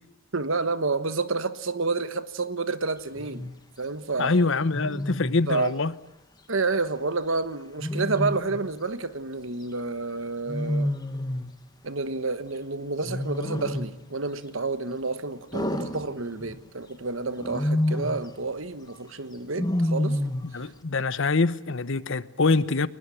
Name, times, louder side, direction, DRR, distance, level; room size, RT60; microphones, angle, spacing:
voice 1, 0.3-3.5 3.8-4.3 5.5-5.7 6.5-10.9 11.8-20.2 20.6-20.7, right 3 dB, 60° right, 1.3 m, -29 dB
Wild animals, 3.1-3.5 4.7-5.4 7.8-8.7 10.5-11.6 13.0-14.0 15.5-16.6 17.4-18.3 19.6-20.6, left 1 dB, 20° left, 1.5 m, -28 dB
voice 2, 4.2-5.9 20.5-22.9, left 3 dB, 60° left, 0.9 m, -24 dB
23.0 x 20.0 x 10.0 m
head